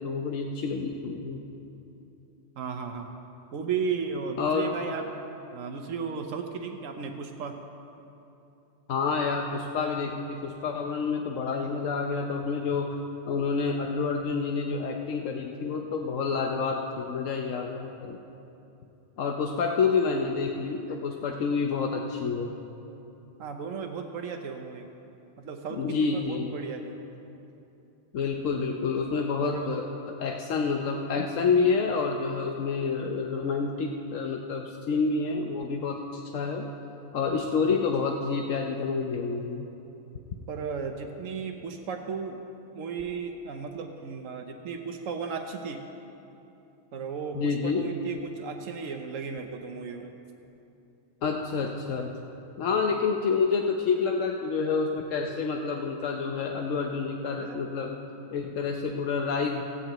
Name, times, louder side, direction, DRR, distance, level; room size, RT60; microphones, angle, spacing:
voice 1, 0.0-1.4 4.4-4.7 8.9-13.0 13.2-18.2 19.2-22.6 25.7-26.5 28.1-29.8 30.2-36.7 37.1-39.7 47.3-47.9 51.2-52.1 52.6-58.0 58.3-59.6, left 5 dB, 80° left, 2 dB, 1.1 m, -28 dB
voice 2, 2.6-3.1 3.5-5.1 5.5-7.6 23.4-24.9 25.4-27.0 29.4-29.7 40.5-42.4 42.7-45.8 46.9-50.1 57.4-57.6 59.4-59.6, right 5 dB, 85° right, 4 dB, 1.2 m, -35 dB
16.5 x 16.5 x 3.0 m, 2.9 s
omnidirectional pair, 1.3 m